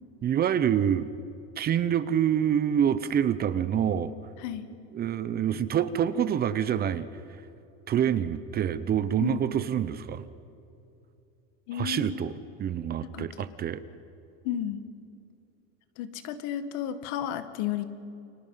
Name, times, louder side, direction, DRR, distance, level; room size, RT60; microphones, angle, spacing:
voice 1, 0.2-1.1 1.6-4.1 4.9-7.1 7.9-10.2 11.7-12.3 12.6-13.8, right 9 dB, 30° right, 14 dB, 0.8 m, -26 dB
voice 2, 11.7-12.2 13.1-13.3 14.4-14.8 16.0-17.9, left 10 dB, 65° left, 11 dB, 1.8 m, -32 dB
29.5 x 24.5 x 5.7 m, 2.7 s
supercardioid pair, 140°, 32 cm